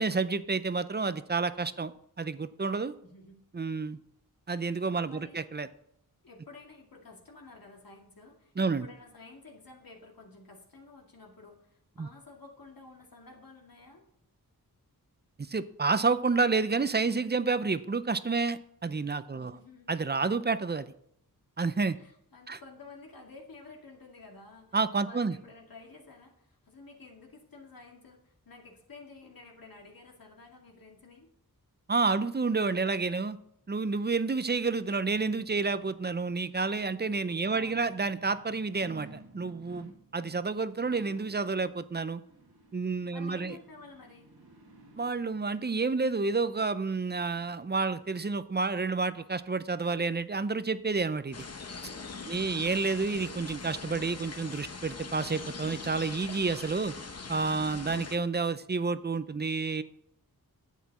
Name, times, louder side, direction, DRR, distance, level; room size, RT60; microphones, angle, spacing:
voice 1, 0.0-1.9 2.2-2.9 3.5-4.0 4.5-5.7 8.6-8.9 12.0-12.1 15.5-19.5 19.9-20.9 21.6-22.0 22.5-22.6 24.7-25.4 31.9-33.4 33.7-42.2 42.7-43.6 44.9-51.5 52.3-56.9 57.3-59.8, right 4 dB, 30° right, 13 dB, 0.5 m, -29 dB
voice 2, 3.0-3.4 5.1-5.4 6.2-14.0 19.3-19.9 22.0-31.3 37.4-38.0 43.1-44.3 52.1-52.7, left 3 dB, 70° left, 0 dB, 2.3 m, -52 dB
sound 1, 34.9-48.2 48.7-48.8, right 3 dB, 85° right, 1.9 m, -56 dB
sound 2, 51.3-58.2, left 4 dB, 45° left, 0.9 m, -42 dB
11.0 x 8.4 x 4.2 m, 0.72 s
wide cardioid pair, 85°, 37 cm